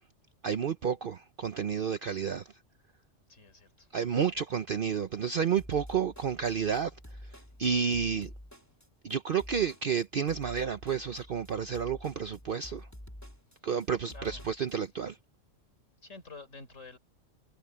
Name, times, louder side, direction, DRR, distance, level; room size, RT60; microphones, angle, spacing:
voice 1, 0.4-2.5 3.9-6.9 7.6-8.3 9.0-12.9 13.6-15.2, right 7 dB, 50° right, 0.8 m, -30 dB
voice 2, 3.3-4.4 14.1-14.4 16.0-17.0, left 3 dB, 85° left, 4.3 m, -50 dB
sound 1, 5.6-14.8, equal, 15° left, 3.1 m, -48 dB
omnidirectional pair, 1.3 m